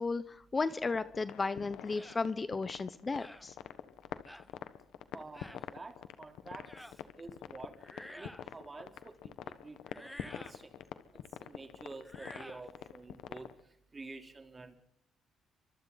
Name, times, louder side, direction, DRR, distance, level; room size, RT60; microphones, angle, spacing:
voice 1, 0.0-3.5, left 4 dB, 30° left, 14 dB, 0.9 m, -34 dB
sound 1, 0.8-13.6, left 11 dB, 85° left, 1.2 m, -46 dB
sound 2, 1.9-2.2 3.2-3.5 4.3-4.5 5.3-5.6 6.7-7.0 7.8-8.5 9.9-10.6 12.0-12.7, left 1 dB, 5° left, 0.9 m, -50 dB
voice 2, 5.1-6.7 7.2-7.8 8.2-10.7 11.4-13.5 13.9-14.7, right 3 dB, 30° right, 5 dB, 3.5 m, -49 dB
28.0 x 24.5 x 4.1 m, 0.68 s
cardioid pair, 90°, 0 cm